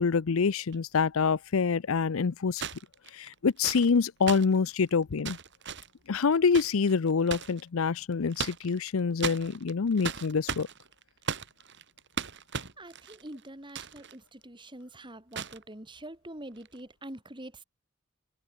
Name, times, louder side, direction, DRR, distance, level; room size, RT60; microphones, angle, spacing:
voice 1, 0.0-2.6 3.1-5.4 6.1-10.7, left 5 dB, 70° left, 0.6 m, -26 dB
sound 1, 0.7-0.8 2.5-7.6 8.1-8.9 9.2-14.2 14.4-14.5 15.3-15.6 16.6-16.8, right 6 dB, 55° right, 3.1 m, -37 dB
voice 2, 12.8-17.6, right 1 dB, 20° right, 3.4 m, -45 dB
head